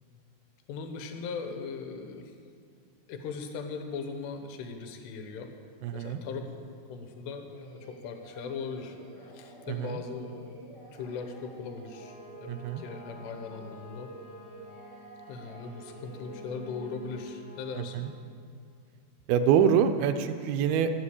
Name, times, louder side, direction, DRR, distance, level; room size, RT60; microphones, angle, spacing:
voice 1, 0.7-2.3 3.1-5.5 5.9-6.5 6.9-14.1 15.3-18.1, left 5 dB, 80° left, 5 dB, 3.1 m, -39 dB
voice 2, 5.8-6.2 9.7-10.0 12.5-12.8 17.8-18.1 19.3-20.9, right 8 dB, 80° right, 8 dB, 2.3 m, -25 dB
Singing, 7.5-16.9, right 2 dB, 55° right, 0.3 m, -50 dB
sound 1, 11.9-18.1, left 1 dB, 40° left, 2.6 m, -50 dB
12.5 x 8.2 x 8.3 m, 2.2 s
omnidirectional pair, 4.9 m